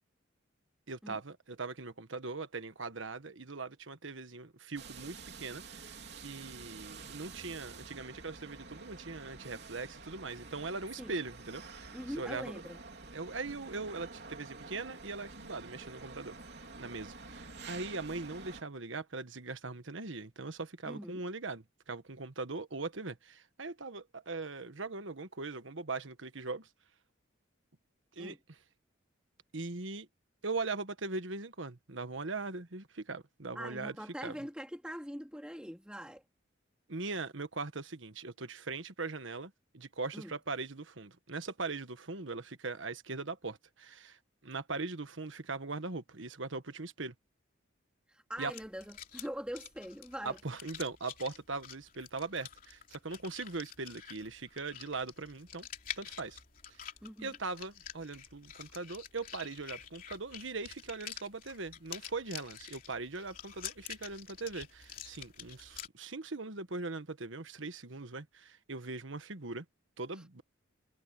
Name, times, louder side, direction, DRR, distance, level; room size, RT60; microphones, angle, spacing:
voice 1, 0.9-12.6 13.1-16.4 16.8-26.7 28.2-28.3 29.5-30.1 30.4-33.9 34.2-34.3 36.9-47.1 48.4-48.5 50.2-55.7 56.0-56.4 57.2-69.6 70.0-70.4, right 3 dB, 75° right, 1.4 m, -40 dB
sound 1, 4.8-18.6, right 4 dB, 55° right, 3.6 m, -49 dB
voice 2, 11.9-12.8 20.9-21.2 28.2-28.4 33.5-36.2 40.1-40.3 48.1-50.4 57.0-57.4 70.1-70.2, equal, 5° right, 2.7 m, -43 dB
sound 2, 48.4-65.9, left 9 dB, 45° left, 3.3 m, -48 dB
head